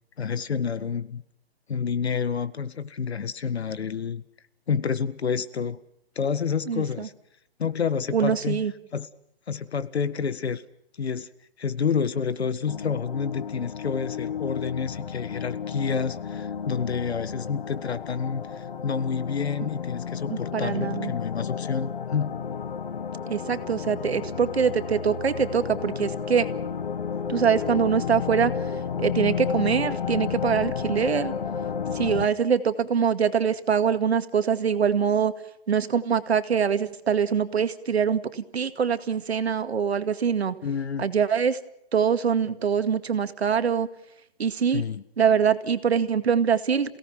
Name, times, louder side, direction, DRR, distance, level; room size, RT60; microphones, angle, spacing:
voice 1, 0.2-1.2 1.7-4.2 4.7-5.8 6.2-7.1 7.6-8.6 8.9-9.1 9.5-10.6 11.0-11.3 11.6-22.3 40.6-41.1 44.7-45.0, left 6 dB, 85° left, 15 dB, 1.7 m, -29 dB
voice 2, 6.7-7.1 8.1-8.7 20.3-21.1 23.3-26.5 27.3-28.5 29.0-31.3 31.9-35.3 35.7-40.6 41.0-41.6 41.9-43.9 44.4-44.8 45.2-47.0, right 7 dB, 80° right, 10 dB, 2.2 m, -24 dB
sound 1, 12.7-32.3, left 7 dB, 55° left, 1.6 m, -32 dB
28.5 x 17.5 x 6.0 m, 0.76 s
hypercardioid pair, 170°, 31 cm